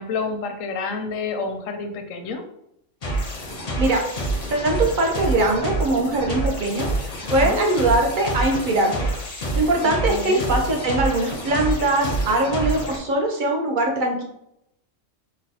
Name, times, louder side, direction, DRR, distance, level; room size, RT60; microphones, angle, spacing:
voice 1, 0.0-2.4 7.2-7.7 9.8-10.5, left 4 dB, 85° left, 5 dB, 1.0 m, -29 dB
sound 1, 3.0-13.0, right 1 dB, 45° left, 0.5 m, -27 dB
voice 2, 4.5-6.9 7.3-9.1 9.5-14.2, right 2 dB, 55° right, 1 dB, 0.5 m, -21 dB
4.0 x 2.2 x 2.7 m, 0.78 s
omnidirectional pair, 1.3 m